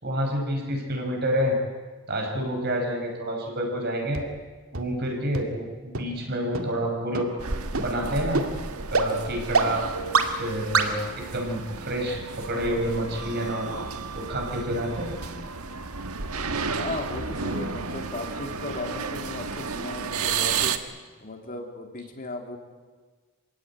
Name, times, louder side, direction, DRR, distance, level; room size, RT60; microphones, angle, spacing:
voice 1, 0.0-1.6 2.1-4.2 4.7-7.3 7.8-8.4 8.9-9.9 10.4-13.7 14.2-15.1, equal, 45° right, 2 dB, 5.3 m, -28 dB
sound 1, 4.1-4.2 4.7-4.8 5.3-5.4 5.9-6.0 6.5-6.6 7.1-7.2 7.7-7.8 8.3-8.4 8.9-9.0 9.5-9.6 10.1-10.2 10.7-10.8, right 4 dB, 70° right, 2.3 m, -22 dB
sound 2, 7.4-20.8, right 5 dB, 90° right, 1.5 m, -32 dB
voice 2, 16.7-20.8 21.2-22.6, left 2 dB, 40° left, 3 dB, 3.3 m, -36 dB
27.0 x 17.0 x 9.7 m, 1.4 s
head